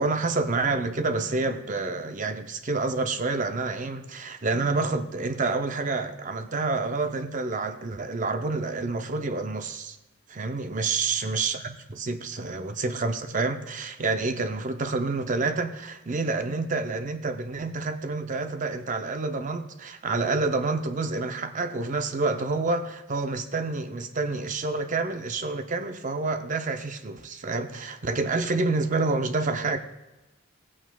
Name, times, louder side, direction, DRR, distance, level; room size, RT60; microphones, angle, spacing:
voice 1, 0.0-10.0 10.3-29.8, right 3 dB, 35° right, 7 dB, 0.6 m, -28 dB
16.5 x 8.6 x 2.3 m, 1.0 s
head